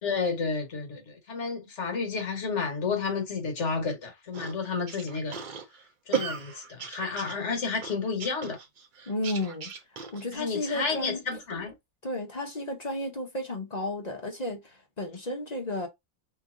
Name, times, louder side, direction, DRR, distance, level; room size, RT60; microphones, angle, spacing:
voice 1, 0.0-5.4 6.1-8.6 10.3-11.7, left 4 dB, 50° left, 1.5 m, -31 dB
sound 1, 4.3-10.4, right 6 dB, 55° right, 0.5 m, -36 dB
voice 2, 9.1-9.7 10.1-11.2 12.0-15.9, left 1 dB, 35° left, 0.8 m, -33 dB
3.3 x 3.0 x 3.7 m
omnidirectional pair, 1.6 m